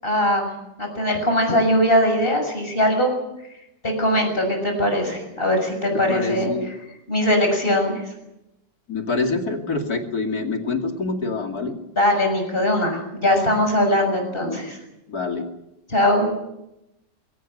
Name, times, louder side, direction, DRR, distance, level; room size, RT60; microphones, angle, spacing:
voice 1, 0.0-0.4 0.8-3.1 3.8-6.5 7.1-8.1 11.9-14.8 15.9-16.3, left 1 dB, 30° left, 3 dB, 6.9 m, -20 dB
voice 2, 5.9-6.7 8.9-11.8 15.1-15.5, left 3 dB, 55° left, 4 dB, 3.1 m, -26 dB
22.5 x 17.5 x 9.1 m, 0.90 s
omnidirectional pair, 2.0 m